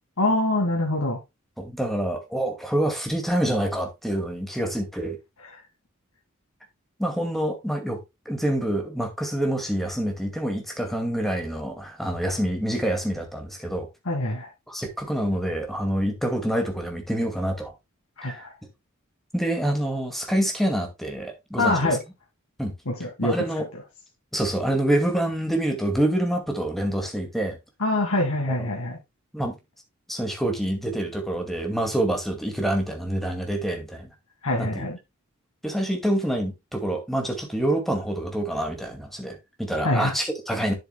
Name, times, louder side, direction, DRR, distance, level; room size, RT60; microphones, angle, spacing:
voice 1, 0.2-1.2 5.4-5.6 14.1-14.5 18.2-18.5 21.6-22.0 22.9-23.4 27.8-28.9 34.4-35.0 39.8-40.1, left 2 dB, 80° left, 1.9 m, -24 dB
voice 2, 1.6-5.2 7.0-8.0 8.3-13.9 14.7-17.7 18.2-18.5 19.3-21.9 22.6-22.7 23.2-23.7 24.3-27.6 28.6-28.7 29.3-29.6 30.1-34.1 34.6-34.8 35.6-40.7, right 1 dB, ahead, 2.2 m, -26 dB
10.5 x 7.7 x 2.3 m
head